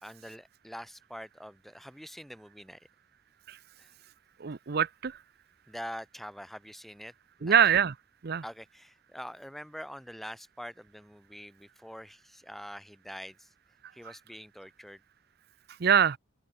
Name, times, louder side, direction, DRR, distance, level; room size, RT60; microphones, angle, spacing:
voice 1, 0.0-2.8 3.8-3.9 5.7-7.1 7.4-7.6 8.4-13.5 13.9-15.0, equal, ahead, 4.1 m, -44 dB
voice 2, 4.4-5.2 7.4-7.9 8.2-8.4 14.0-14.1 15.8-16.2, right 8 dB, 50° right, 0.5 m, -24 dB
open air
head